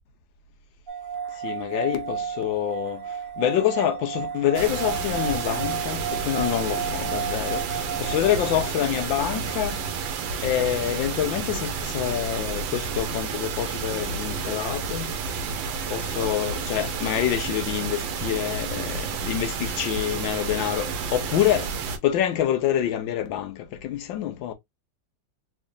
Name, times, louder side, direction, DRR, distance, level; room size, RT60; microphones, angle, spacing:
sound 1, 0.9-12.2, right 7 dB, 55° right, 0.5 m, -34 dB
voice 1, 1.4-15.1 15.9-21.8 22.0-24.5, left 11 dB, 80° left, 1.5 m, -27 dB
sound 2, 4.5-22.0, right 5 dB, 85° right, 1.5 m, -30 dB
3.8 x 3.3 x 2.5 m
omnidirectional pair, 2.1 m